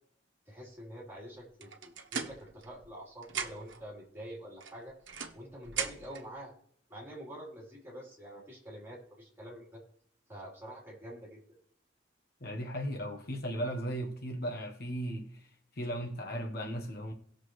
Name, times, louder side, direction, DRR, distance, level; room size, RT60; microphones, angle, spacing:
voice 1, 0.5-4.9 5.3-6.5 6.9-9.8 10.3-11.4, equal, 10° right, 3.7 m, -46 dB
sound 1, 1.6-3.0 3.2-3.8 4.6-6.3, right 6 dB, 85° right, 1.1 m, -39 dB
voice 2, 12.4-15.5 15.8-17.1, equal, 55° left, 1.2 m, -36 dB
18.5 x 6.7 x 3.2 m
head